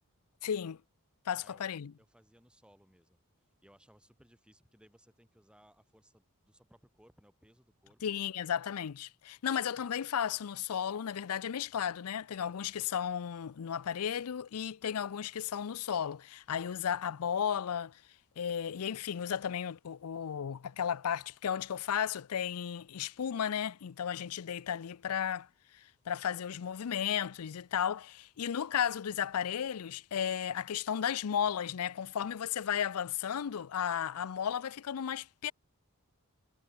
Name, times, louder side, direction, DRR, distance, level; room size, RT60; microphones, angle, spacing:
voice 1, 0.4-0.8 1.3-1.9 8.0-17.9 18.4-25.5 26.1-35.5, left 8 dB, 75° left, 0.5 m, -34 dB
voice 2, 2.0-3.2 3.6-8.0, equal, 5° right, 4.7 m, -63 dB
head